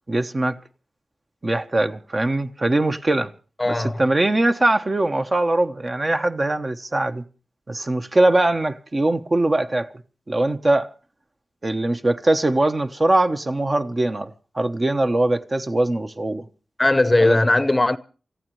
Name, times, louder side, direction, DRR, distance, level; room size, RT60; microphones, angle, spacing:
voice 1, 0.1-0.6 1.4-3.3 3.7-7.2 7.7-9.9 10.3-10.9 11.6-16.5 17.2-17.4, right 2 dB, 40° right, 1.0 m, -21 dB
voice 2, 3.6-4.0 16.8-18.0, left 2 dB, 30° left, 0.7 m, -18 dB
28.5 x 14.5 x 3.1 m
cardioid pair, 45°, 0 cm